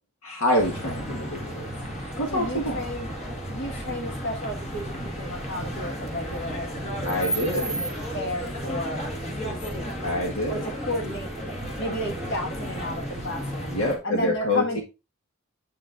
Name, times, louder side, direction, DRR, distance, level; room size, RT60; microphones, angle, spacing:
voice 1, 0.2-1.7 2.2-2.8 7.0-7.8 10.0-10.7 13.7-14.8, left 1 dB, 70° left, 1.6 m, -26 dB
sound 1, 0.6-14.0, equal, 30° left, 1.6 m, -33 dB
voice 2, 2.3-3.1 3.5-7.2 7.5-9.1 9.4-10.0 10.5-11.3 11.8-13.7 14.0-14.8, left 1 dB, 55° left, 1.7 m, -33 dB
7.9 x 7.1 x 2.5 m
head